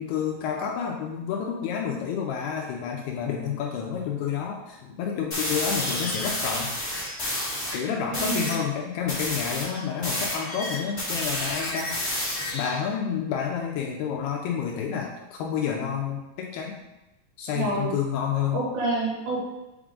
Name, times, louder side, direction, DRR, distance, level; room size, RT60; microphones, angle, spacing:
voice 1, 0.0-6.7 7.7-12.0 12.5-16.8 17.4-18.6, left 7 dB, 85° left, 0 dB, 2.3 m, -29 dB
sound 1, 5.3-7.8 8.1-8.6 9.1-12.8, left 1 dB, 30° left, 1.1 m, -30 dB
voice 2, 8.1-8.5 17.5-17.9 18.5-19.4, right 2 dB, 80° right, -6 dB, 4.5 m, -28 dB
7.9 x 3.6 x 3.7 m, 0.99 s
omnidirectional pair, 5.2 m